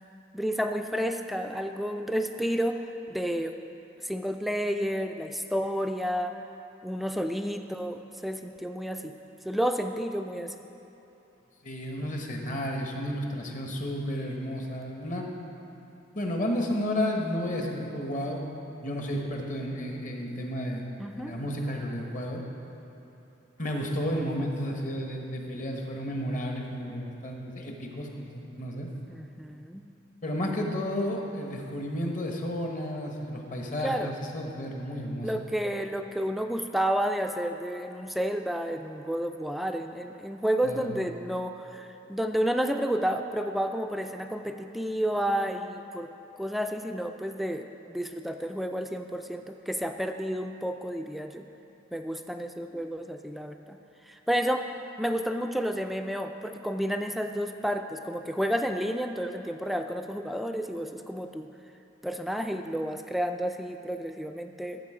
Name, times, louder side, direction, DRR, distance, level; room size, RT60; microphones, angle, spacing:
voice 1, 0.3-2.8 3.1-3.6 4.0-6.4 6.8-9.1 9.5-10.5 21.0-21.3 29.1-29.9 33.8-34.1 35.2-46.1 46.4-51.5 51.9-53.8 54.1-54.6 55.0-61.5 62.0-64.8, equal, ahead, 5 dB, 0.3 m, -31 dB
voice 2, 11.6-15.3 16.1-18.5 18.8-22.4 23.6-28.9 30.2-35.3 40.6-40.9, equal, 45° left, 1 dB, 1.2 m, -32 dB
13.5 x 7.5 x 4.9 m, 2.9 s
head